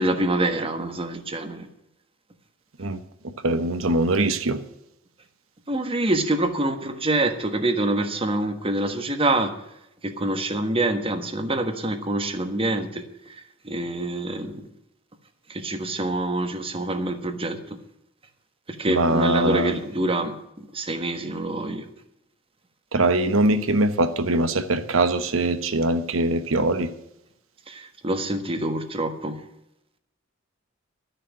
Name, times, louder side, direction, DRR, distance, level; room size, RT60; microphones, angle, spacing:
voice 1, 0.0-1.7 5.7-9.6 10.0-13.3 13.6-14.6 15.5-17.8 18.7-21.9 27.7-29.4, right 2 dB, 30° right, 1.4 m, -26 dB
voice 2, 2.8-4.6 18.9-19.8 22.9-26.9, right 2 dB, 80° right, 1.1 m, -22 dB
12.0 x 6.7 x 9.2 m
head